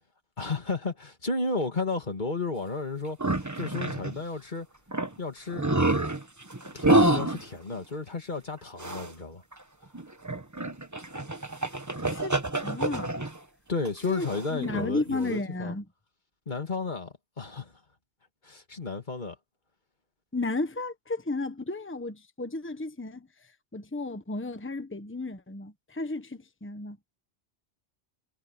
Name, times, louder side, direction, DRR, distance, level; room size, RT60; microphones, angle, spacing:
voice 1, 0.4-4.7 5.2-5.6 6.7-9.4 13.7-15.8 16.5-17.8 18.4-19.4, left 3 dB, 45° left, 2.2 m, -33 dB
sound 1, 3.2-4.2 4.6-4.7 4.9-5.2 5.5-7.6 8.8-9.1 9.5-9.6 9.9-13.4 13.9-14.9, right 2 dB, 15° right, 1.3 m, -27 dB
voice 2, 12.1-13.2 14.0-15.8 20.3-23.3 23.7-27.0, left 2 dB, 10° left, 1.2 m, -33 dB
omnidirectional pair, 1.1 m